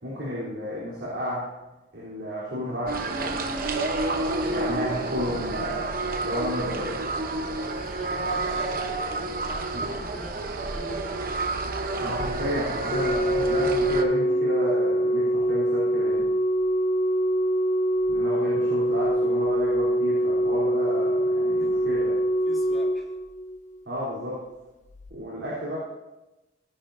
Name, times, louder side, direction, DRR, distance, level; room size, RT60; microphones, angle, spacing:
voice 1, 0.0-1.5 1.9-3.4 4.4-7.0 9.7-9.9 12.0-16.3 18.1-22.1 23.9-24.5 25.1-25.8, equal, 60° right, -8 dB, 3.6 m, -32 dB
sound 1, 2.9-14.0, right 2 dB, 45° right, 0.9 m, -29 dB
voice 2, 7.6-11.4 11.7-12.0 21.6-21.8 22.4-23.1, equal, ahead, -6 dB, 2.9 m, -44 dB
Organ, 12.9-23.8 24.9-25.1, right 1 dB, 40° left, 0.5 m, -24 dB
17.0 x 10.5 x 2.7 m, 1.0 s
head